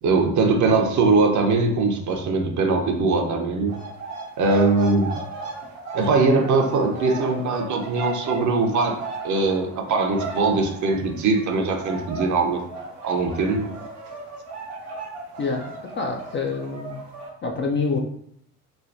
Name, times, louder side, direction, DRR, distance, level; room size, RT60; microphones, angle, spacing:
voice 1, 0.0-3.8 4.4-5.2 5.9-9.0 9.2-12.6 13.0-13.7, right 3 dB, 45° right, 4 dB, 0.7 m, -21 dB
sound 1, 3.7-11.5 11.8-17.3, right 3 dB, 90° right, 0.9 m, -36 dB
voice 2, 15.4-15.7 16.0-17.0 17.4-18.0, left 4 dB, 30° left, 1 dB, 0.4 m, -26 dB
3.3 x 2.2 x 2.6 m, 0.70 s
hypercardioid pair, 55°, 44 cm